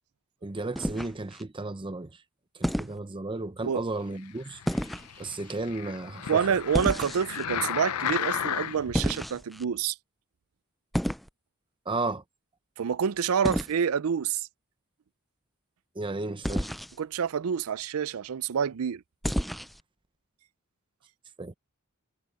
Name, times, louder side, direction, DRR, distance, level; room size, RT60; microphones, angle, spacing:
voice 1, 0.4-2.2 2.5-4.6 5.0-6.4 11.9-12.2 15.9-16.7 21.4-21.5, right 2 dB, 20° right, 0.7 m, -34 dB
sound 1, 0.8-1.4 2.6-3.0 4.7-5.1 6.7-7.4 8.9-9.6 10.9-11.3 13.4-13.7 16.4-16.9 19.2-19.8, equal, ahead, 0.3 m, -30 dB
sound 2, 4.4-9.0 9.6-9.7, left 9 dB, 80° left, 0.5 m, -34 dB
voice 2, 6.3-10.0 12.8-14.5 17.0-19.0, right 7 dB, 70° right, 0.4 m, -27 dB
head